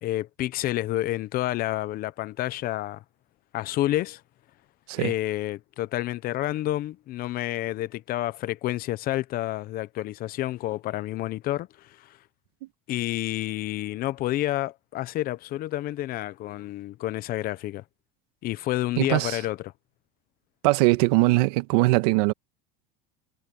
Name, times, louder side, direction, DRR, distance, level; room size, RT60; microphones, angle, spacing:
voice 1, 0.0-3.0 3.5-4.2 5.0-12.2 12.9-17.8 18.4-19.7, left 15 dB, 50° left, 0.9 m, -29 dB
voice 2, 19.0-19.4 20.6-22.3, right 21 dB, 80° right, 1.4 m, -21 dB
supercardioid pair, 125°, 20 cm